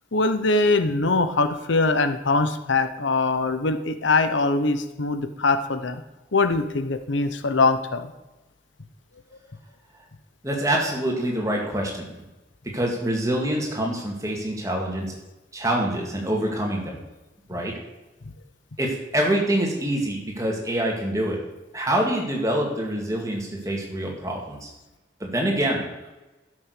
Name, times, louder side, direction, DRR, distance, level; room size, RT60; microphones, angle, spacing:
voice 1, 0.1-6.0 6.3-8.1, left 3 dB, 85° left, 10 dB, 0.9 m, -22 dB
voice 2, 10.4-12.1 12.6-15.1 15.5-17.0 17.5-17.7 18.8-21.4 21.7-24.7 25.2-26.1, right 1 dB, 15° right, -1 dB, 2.3 m, -25 dB
12.5 x 6.5 x 6.6 m, 1.0 s
head